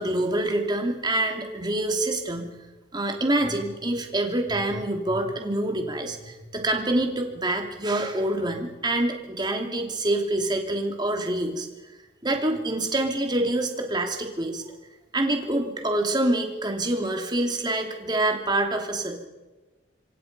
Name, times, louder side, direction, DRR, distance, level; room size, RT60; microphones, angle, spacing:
voice 1, 0.0-2.5 2.9-11.7 12.2-14.6 15.1-19.3, right 1 dB, 20° right, 3 dB, 2.9 m, -26 dB
27.0 x 24.5 x 5.5 m, 1.2 s
head